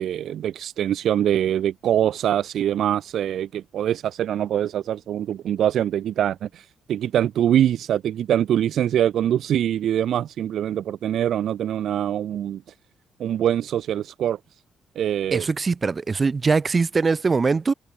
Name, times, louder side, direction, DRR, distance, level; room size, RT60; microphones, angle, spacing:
voice 1, 0.0-12.6 13.2-14.4 15.0-15.5, right 10 dB, 65° right, 0.3 m, -23 dB
voice 2, 15.3-17.7, right 4 dB, 25° right, 1.5 m, -22 dB
cardioid pair, 150°, 0 cm